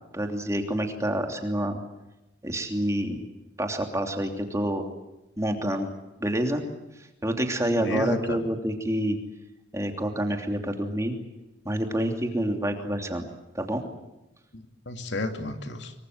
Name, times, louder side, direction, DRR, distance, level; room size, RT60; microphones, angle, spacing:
voice 1, 0.1-1.8 2.4-3.2 3.6-4.8 5.4-5.9 6.2-6.6 7.2-9.2 9.7-11.1 11.6-13.2 13.5-13.8, right 1 dB, 15° right, 4 dB, 3.0 m, -27 dB
voice 2, 7.7-8.4 14.5-15.9, left 2 dB, 75° left, 6 dB, 2.7 m, -32 dB
25.5 x 24.0 x 7.9 m, 0.99 s
head